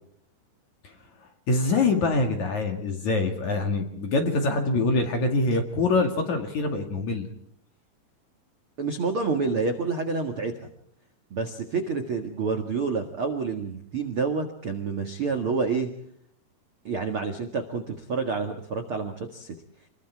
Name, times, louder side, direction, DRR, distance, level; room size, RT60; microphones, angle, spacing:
voice 1, 1.5-7.3, left 3 dB, 50° left, 5 dB, 2.9 m, -24 dB
voice 2, 8.8-10.7 11.3-15.9 16.8-19.5, right 4 dB, 55° right, 5 dB, 1.5 m, -28 dB
28.0 x 22.0 x 4.7 m, 0.69 s
omnidirectional pair, 5.4 m